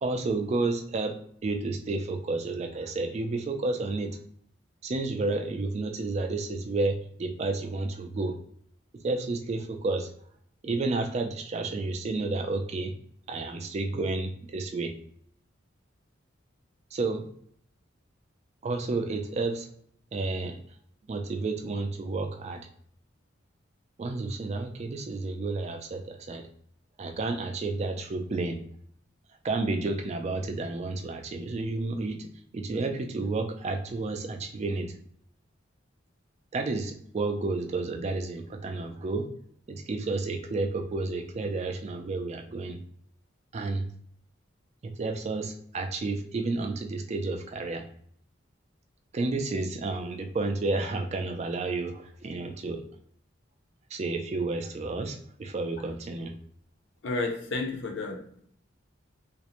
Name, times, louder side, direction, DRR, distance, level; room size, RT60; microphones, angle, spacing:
voice 1, 0.0-1.1 1.4-4.2 4.8-8.4 9.0-10.1 10.6-12.9 13.3-14.9 16.9-17.3 18.6-19.7 20.1-20.6 21.1-22.6 24.0-26.5 27.0-28.6 29.4-32.3 32.5-34.9 36.5-39.3 39.7-42.8 43.5-43.8 44.8-47.8 49.1-52.8 53.9-56.3, right 3 dB, 35° right, 5 dB, 0.3 m, -31 dB
voice 2, 57.0-58.4, left 3 dB, 65° left, 2 dB, 0.6 m, -32 dB
2.4 x 2.0 x 2.8 m, 0.63 s
head